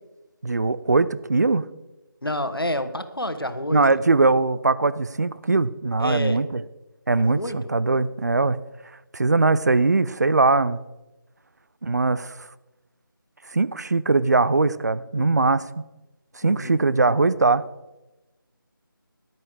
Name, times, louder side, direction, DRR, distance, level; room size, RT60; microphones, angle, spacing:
voice 1, 0.4-1.7 3.7-6.6 7.1-8.6 9.1-10.8 11.8-12.5 13.5-15.8 16.4-17.6, right 3 dB, 50° right, 16 dB, 0.6 m, -21 dB
voice 2, 2.2-4.0 6.0-6.4 7.2-7.6 15.2-15.5 16.4-16.8, left 1 dB, 85° left, 10 dB, 1.5 m, -29 dB
13.5 x 11.0 x 4.8 m, 1.0 s
figure-of-eight pair, 160°, 12 cm